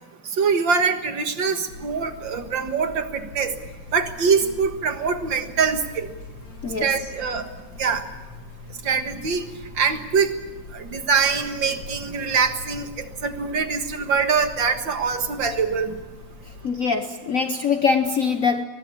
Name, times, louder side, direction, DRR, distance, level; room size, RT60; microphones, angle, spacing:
voice 1, 0.4-3.5 3.9-6.1 6.8-7.4 7.8-8.0 8.8-9.4 9.8-10.3 10.7-16.0, right 5 dB, 60° right, 2.2 m, -23 dB
Buzz, 1.7-16.7, left 4 dB, 90° left, 3.1 m, -42 dB
voice 2, 16.6-18.6, left 5 dB, 55° left, 0.9 m, -23 dB
23.5 x 20.5 x 8.6 m
omnidirectional pair, 2.4 m